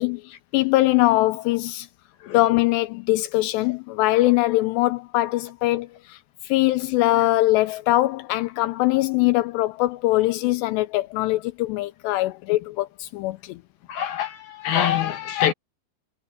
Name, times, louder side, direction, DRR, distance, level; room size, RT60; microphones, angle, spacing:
voice 1, 0.0-1.9 2.3-6.2 6.4-13.6, left 18 dB, 85° left, 2.5 m, -22 dB
voice 2, 13.9-15.5, left 10 dB, 65° left, 2.6 m, -24 dB
omnidirectional pair, 5.5 m